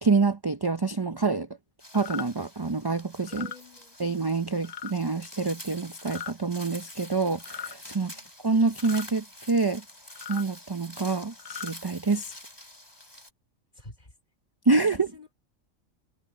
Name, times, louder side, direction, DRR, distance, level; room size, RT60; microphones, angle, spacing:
voice 1, 0.0-1.5 1.9-3.5 4.0-8.1 8.4-9.8 10.3-12.4 14.7-15.1, right 4 dB, 30° right, 0.4 m, -26 dB
sound 1, 1.8-13.3, left 1 dB, 15° left, 3.5 m, -47 dB
sound 2, 1.9-2.3 3.2-3.6 4.6-4.9 6.0-6.3 7.4-7.8 8.8-9.1 10.1-10.4 11.3-11.7, left 8 dB, 75° left, 0.3 m, -38 dB
voice 2, 3.3-4.0 8.0-8.3 13.7-14.1 14.9-15.3, left 2 dB, 30° left, 3.3 m, -49 dB
omnidirectional pair, 1.4 m